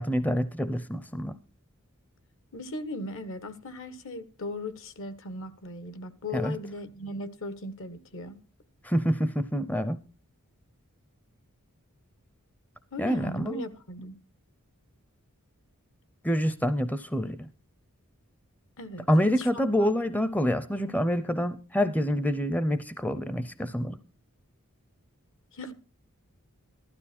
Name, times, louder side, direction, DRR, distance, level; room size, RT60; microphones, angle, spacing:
voice 1, 0.0-1.3 6.3-6.6 8.8-10.0 13.0-13.7 16.2-17.5 19.1-24.0, equal, 5° left, 0.6 m, -27 dB
voice 2, 2.5-8.4 12.9-14.1 18.8-19.6 25.5-25.7, left 2 dB, 60° left, 1.2 m, -38 dB
15.0 x 12.5 x 4.3 m
head